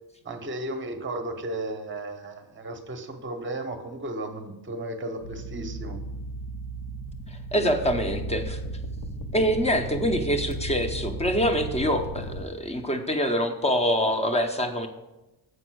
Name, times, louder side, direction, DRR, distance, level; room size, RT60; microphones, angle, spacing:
voice 1, 0.2-6.0, right 1 dB, 25° right, 6 dB, 0.8 m, -34 dB
sound 1, 5.2-12.4, right 1 dB, 60° left, 0.8 m, -35 dB
voice 2, 7.3-8.6 9.3-14.9, equal, 15° left, 6 dB, 0.6 m, -25 dB
7.9 x 5.3 x 6.1 m, 1.0 s
wide cardioid pair, 175°, 46 cm